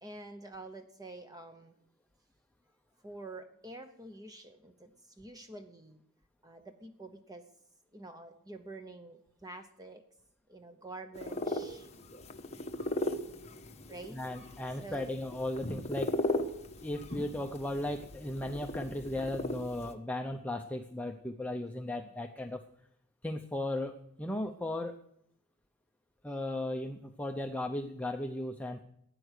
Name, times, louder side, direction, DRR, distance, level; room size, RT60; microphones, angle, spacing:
voice 1, 0.0-1.7 3.0-4.9 5.2-6.0 6.4-7.5 7.9-10.0 10.5-11.9 13.9-14.2 14.8-15.1 22.0-22.1, right 2 dB, 15° right, 7 dB, 0.9 m, -47 dB
sound 1, 11.1-19.9, left 1 dB, 30° left, 1.2 m, -38 dB
voice 2, 14.1-16.2 16.8-22.6 23.2-25.0 26.2-28.8, left 1 dB, 5° left, 4 dB, 0.6 m, -36 dB
15.5 x 10.5 x 6.5 m, 0.73 s
head